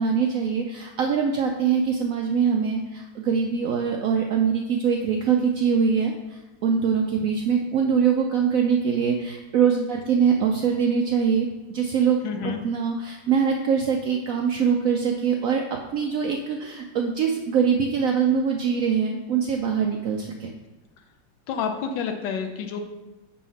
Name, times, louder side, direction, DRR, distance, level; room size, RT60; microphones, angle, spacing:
voice 1, 0.0-12.2 12.6-15.6 15.9-20.5, right 6 dB, 85° right, 1 dB, 0.7 m, -23 dB
voice 2, 12.2-12.6 21.5-22.8, left 6 dB, 75° left, 5 dB, 1.3 m, -29 dB
6.2 x 4.2 x 5.5 m, 1.1 s
omnidirectional pair, 2.1 m